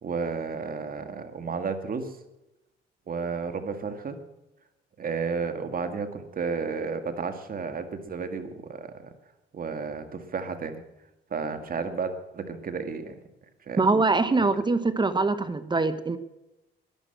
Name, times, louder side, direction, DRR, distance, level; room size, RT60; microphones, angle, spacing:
voice 1, 0.0-2.2 3.1-4.2 5.0-9.1 9.5-10.8 11.3-13.2 13.7-13.8 14.4-14.5, right 5 dB, 45° right, 8 dB, 2.0 m, -32 dB
voice 2, 13.8-16.2, right 3 dB, 25° right, 13 dB, 1.0 m, -23 dB
12.5 x 11.0 x 8.0 m, 0.94 s
cardioid pair, 90°, 20 cm